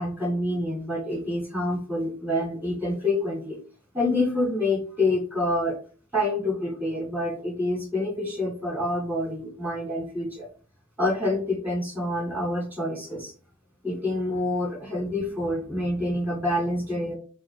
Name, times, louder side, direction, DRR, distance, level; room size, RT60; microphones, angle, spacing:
voice 1, 0.0-3.6 3.9-5.8 6.1-10.5 11.0-13.3 13.8-17.2, left 1 dB, 10° right, 0 dB, 1.8 m, -27 dB
7.5 x 2.6 x 5.1 m, 0.40 s
head